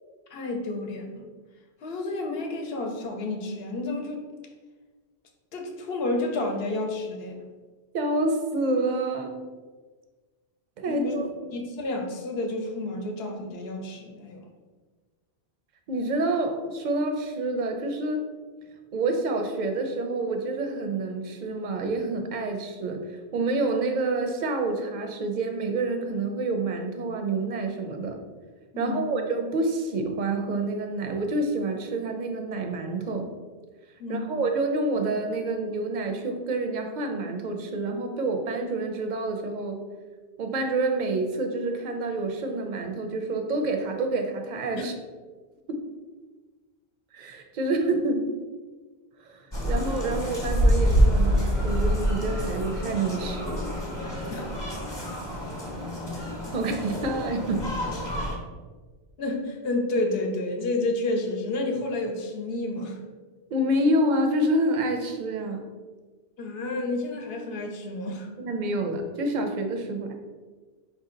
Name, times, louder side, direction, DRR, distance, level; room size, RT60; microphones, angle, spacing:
voice 1, 0.3-1.2 1.8-4.2 5.5-7.4 10.9-11.1 11.5-14.4 28.7-29.1 34.0-34.4 44.8-44.9 54.3-54.4 59.2-63.0 66.4-68.3, left 2 dB, 65° left, 2 dB, 0.9 m, -30 dB
voice 2, 7.9-9.3 10.8-11.3 15.9-18.2 18.9-28.2 28.8-33.3 34.1-39.8 40.4-44.9 45.7-45.8 47.1-48.3 49.2-53.7 56.1-57.7 63.5-65.6 68.4-70.1, right 2 dB, 55° right, 4 dB, 0.6 m, -28 dB
sound 1, 49.5-58.4, equal, 25° left, 0.9 m, -26 dB
4.6 x 2.7 x 3.8 m, 1.4 s
omnidirectional pair, 1.1 m